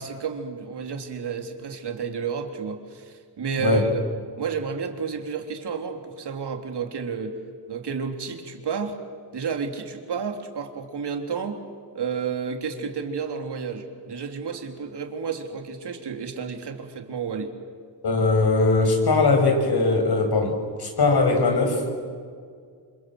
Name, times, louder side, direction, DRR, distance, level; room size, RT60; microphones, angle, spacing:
voice 1, 0.0-4.0 4.4-7.3 7.7-9.0 9.3-11.6 11.9-17.5, right 6 dB, 65° right, 4 dB, 3.5 m, -31 dB
voice 2, 18.0-21.8, left 3 dB, 60° left, 4 dB, 7.1 m, -20 dB
27.5 x 26.5 x 8.0 m, 2.1 s
cardioid pair, 60°, 43 cm